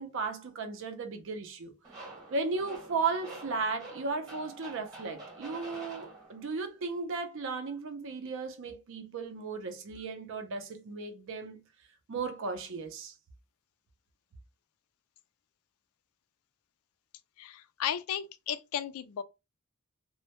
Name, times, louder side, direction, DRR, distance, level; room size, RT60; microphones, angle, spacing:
voice 1, 0.0-1.8 2.3-11.6 12.1-13.1, right 4 dB, 60° right, 0.5 m, -35 dB
sound 1, 1.8-6.6, right 2 dB, 20° right, 0.9 m, -47 dB
voice 2, 17.4-19.2, left 9 dB, 65° left, 0.3 m, -35 dB
2.1 x 2.1 x 2.8 m
head